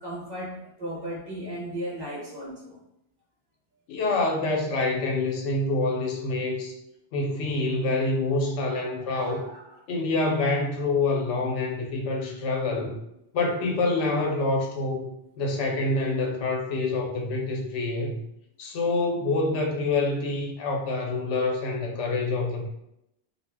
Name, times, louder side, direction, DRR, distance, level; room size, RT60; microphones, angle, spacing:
voice 1, 0.0-2.8 8.4-9.8, equal, 25° right, -4 dB, 0.7 m, -37 dB
voice 2, 3.9-6.7 7.1-9.4 9.9-13.0 13.3-18.2 18.6-22.7, left 2 dB, 85° left, 1 dB, 0.9 m, -26 dB
2.3 x 2.0 x 3.3 m, 0.80 s
omnidirectional pair, 1.2 m